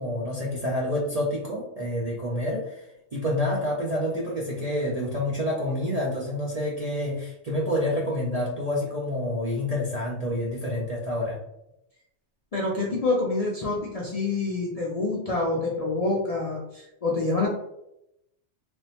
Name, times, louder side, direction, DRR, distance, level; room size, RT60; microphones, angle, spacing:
voice 1, 0.0-11.4, left 1 dB, 50° right, -4 dB, 0.5 m, -28 dB
voice 2, 12.5-17.5, left 3 dB, 50° left, -4 dB, 0.4 m, -27 dB
3.3 x 2.1 x 2.8 m, 0.82 s
omnidirectional pair, 1.3 m